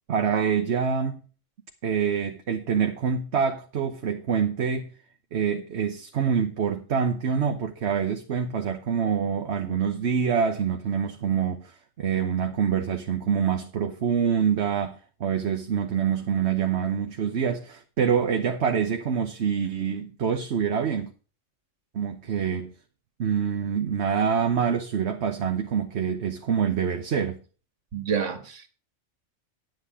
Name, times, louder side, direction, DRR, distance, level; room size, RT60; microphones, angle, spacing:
voice 1, 0.1-1.2 1.8-4.9 5.3-21.1 21.9-22.7 23.2-27.4, right 7 dB, 65° right, 1.2 m, -26 dB
voice 2, 27.9-28.7, right 7 dB, 80° right, 1.8 m, -29 dB
10.5 x 8.0 x 4.7 m
omnidirectional pair, 1.2 m